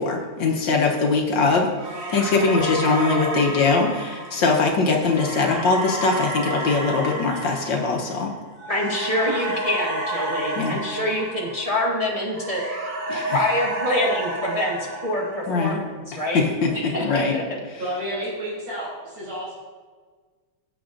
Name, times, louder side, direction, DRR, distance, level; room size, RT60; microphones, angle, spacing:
voice 1, 0.0-1.7 2.1-8.3 10.6-10.8 13.1-13.4 15.5-15.8 16.3-17.3 17.7-17.8, left 4 dB, 70° left, 1 dB, 1.5 m, -21 dB
sound 1, 1.8-12.0 12.3-15.7, right 1 dB, 45° right, 1.7 m, -31 dB
voice 2, 8.7-12.6 13.3-16.4 16.7-17.4, left 1 dB, 20° right, -4 dB, 1.1 m, -26 dB
voice 3, 17.8-19.5, equal, 80° right, -8 dB, 4.0 m, -30 dB
14.0 x 8.0 x 2.5 m, 1.5 s
omnidirectional pair, 2.2 m